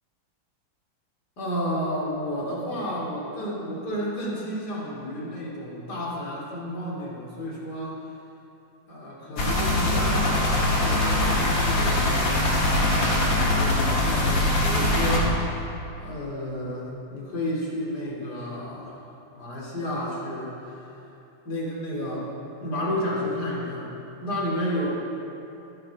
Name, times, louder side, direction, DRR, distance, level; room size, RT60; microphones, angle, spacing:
voice 1, 1.4-8.0 8.9-15.7 16.0-19.0 19.3-20.9 21.4-22.3 22.6-23.9 24.2-24.9, equal, 55° left, -5 dB, 3.2 m, -31 dB
sound 1, 9.4-15.2, left 1 dB, 70° left, 2.5 m, -22 dB
22.0 x 10.5 x 3.5 m, 2.9 s
omnidirectional pair, 2.1 m